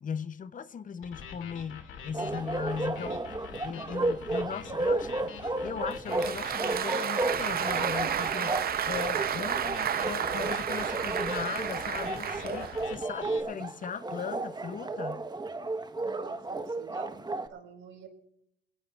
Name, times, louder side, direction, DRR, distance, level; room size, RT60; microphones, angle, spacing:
voice 1, 0.0-3.2 3.6-15.3, left 7 dB, 40° left, 0.7 m, -38 dB
sound 1, 1.0-13.4, left 6 dB, 85° left, 2.2 m, -46 dB
Bark, 2.1-17.5, right 2 dB, 20° right, 1.1 m, -33 dB
Applause, 5.9-13.0, right 9 dB, 50° right, 0.7 m, -32 dB
voice 2, 16.0-18.1, right 7 dB, 80° right, 4.3 m, -49 dB
23.0 x 18.0 x 2.4 m
cardioid pair, 90°, 20 cm